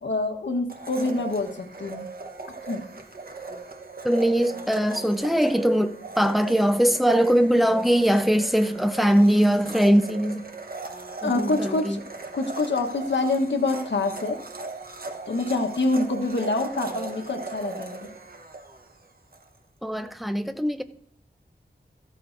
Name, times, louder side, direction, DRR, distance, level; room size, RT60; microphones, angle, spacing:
voice 1, 0.0-2.1 2.7-2.8 11.2-12.0 12.3-14.4 15.3-18.1, left 2 dB, 85° left, 1.2 m, -26 dB
Domestic sounds home sounds, 0.7-19.5, right 3 dB, 55° right, 1.1 m, -39 dB
voice 2, 4.0-10.4 11.2-12.0 19.8-20.8, equal, ahead, 0.7 m, -21 dB
14.0 x 13.0 x 2.6 m
wide cardioid pair, 80°, 18 cm